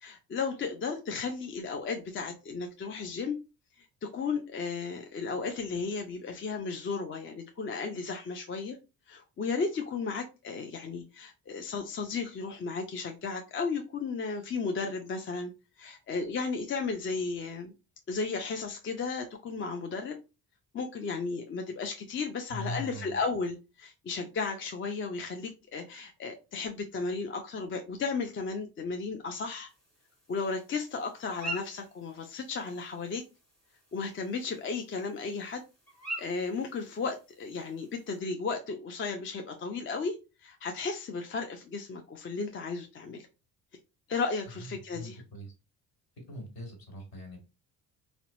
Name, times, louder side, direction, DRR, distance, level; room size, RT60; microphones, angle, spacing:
voice 1, 0.0-3.4 3.8-8.8 9.1-15.5 15.8-17.7 18.1-20.2 20.7-29.7 30.3-33.2 33.9-35.6 36.2-43.3 44.1-45.2, left 4 dB, 30° left, 5 dB, 0.4 m, -34 dB
voice 2, 22.5-23.2 44.6-44.7 45.0-45.5 46.2-47.4, left 1 dB, 55° left, 3 dB, 1.6 m, -41 dB
sound 1, 29.7-38.2, right 2 dB, ahead, 1.4 m, -46 dB
2.8 x 2.1 x 2.6 m, 0.28 s
supercardioid pair, 65°, 44 cm